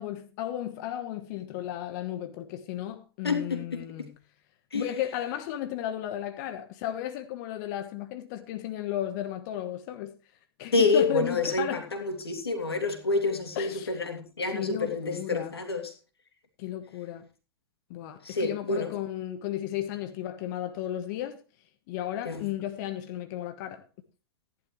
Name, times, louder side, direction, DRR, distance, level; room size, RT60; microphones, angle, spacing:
voice 1, 0.0-4.2 4.7-10.1 10.6-11.9 13.5-14.0 14.5-15.5 16.6-17.2 17.9-21.4 21.9-23.8, left 12 dB, 50° left, 1.3 m, -34 dB
voice 2, 3.2-3.6 4.7-4.9 10.7-15.9 18.2-18.9 22.2-22.4, left 3 dB, 85° left, 3.0 m, -28 dB
15.0 x 11.0 x 3.2 m
hypercardioid pair, 105°, 13 cm